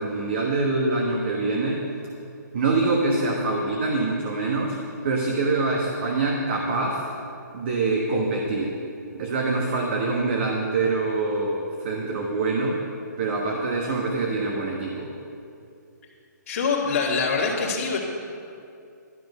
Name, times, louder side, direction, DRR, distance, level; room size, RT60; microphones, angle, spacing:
voice 1, 0.0-1.9 2.5-4.8 5.0-7.1 7.5-8.7 9.1-12.8 13.2-15.1, right 3 dB, 40° right, 0 dB, 1.3 m, -25 dB
voice 2, 16.5-18.0, left 4 dB, 50° left, -5 dB, 2.0 m, -24 dB
12.0 x 10.0 x 5.5 m, 2.5 s
hypercardioid pair, 165°, 10 cm